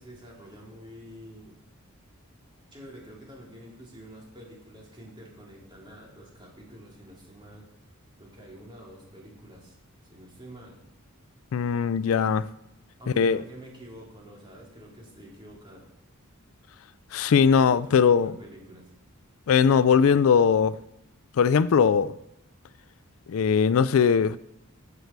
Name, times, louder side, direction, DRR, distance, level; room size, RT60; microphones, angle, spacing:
voice 1, 0.0-1.6 2.7-7.7 8.2-9.8 10.1-10.7 13.0-15.8 17.6-18.9, equal, 25° right, -3 dB, 3.7 m, -47 dB
voice 2, 11.5-12.5 13.2-13.4 17.1-18.3 19.5-20.7 21.4-22.1 23.3-24.4, left 6 dB, 70° left, 17 dB, 0.4 m, -20 dB
16.0 x 7.9 x 4.7 m, 0.84 s
head